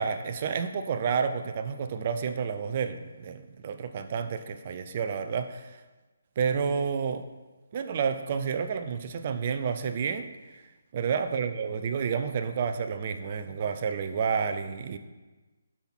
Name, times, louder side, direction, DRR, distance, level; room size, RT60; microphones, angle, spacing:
voice 1, 0.0-5.8 6.4-7.3 7.7-10.6 10.9-15.0, right 6 dB, 40° right, 9 dB, 0.8 m, -30 dB
11.5 x 5.9 x 4.5 m, 1.2 s
figure-of-eight pair, 150°, 0 cm